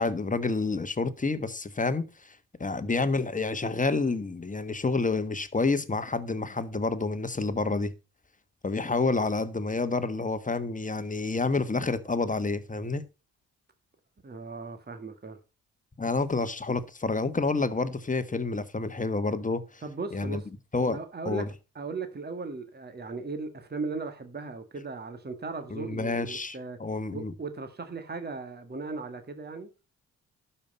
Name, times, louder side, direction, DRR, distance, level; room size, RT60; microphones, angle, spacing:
voice 1, 0.0-7.9 8.6-13.0 16.0-19.8 20.1-20.4 20.7-21.5 25.7-27.3, left 3 dB, 20° left, 1.4 m, -29 dB
voice 2, 14.2-15.4 19.8-20.5 20.9-21.4 21.7-26.8 27.1-29.7, right 3 dB, 30° right, 1.7 m, -37 dB
12.0 x 5.7 x 5.4 m
supercardioid pair, 60°, 35 cm